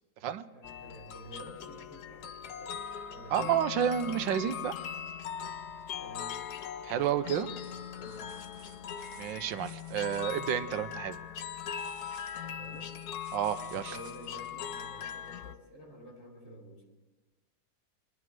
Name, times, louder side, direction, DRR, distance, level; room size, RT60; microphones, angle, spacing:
voice 1, 0.5-3.8 6.0-6.4 7.6-8.3 12.4-12.9 13.5-16.8, right 1 dB, 85° left, -2 dB, 3.9 m, -50 dB
sound 1, 0.6-15.5, left 8 dB, 65° left, 1.2 m, -40 dB
voice 2, 3.3-4.8 6.8-7.5 9.2-11.2 13.3-14.0, right 9 dB, 80° right, 12 dB, 1.5 m, -30 dB
sound 2, 6.9-7.1 7.5-10.4 11.6-14.5 15.3-15.4, right 5 dB, 45° right, 1.4 m, -56 dB
26.5 x 11.0 x 4.6 m, 1.2 s
omnidirectional pair, 2.0 m